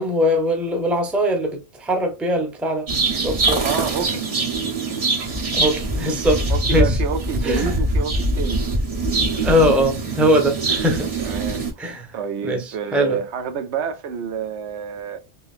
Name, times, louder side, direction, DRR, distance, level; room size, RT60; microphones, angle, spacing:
voice 1, 0.0-2.9 3.2-3.6 5.5-6.4 6.7-7.0 7.4-7.7 9.4-11.1 11.8-12.1 12.4-13.2, equal, ahead, 0.6 m, -21 dB
sound 1, 2.9-11.7, right 2 dB, 35° right, 0.8 m, -23 dB
voice 2, 3.6-4.3 6.5-8.6 11.2-11.6 12.1-15.2, right 6 dB, 80° right, 1.0 m, -28 dB
3.9 x 2.9 x 2.4 m
omnidirectional pair, 1.2 m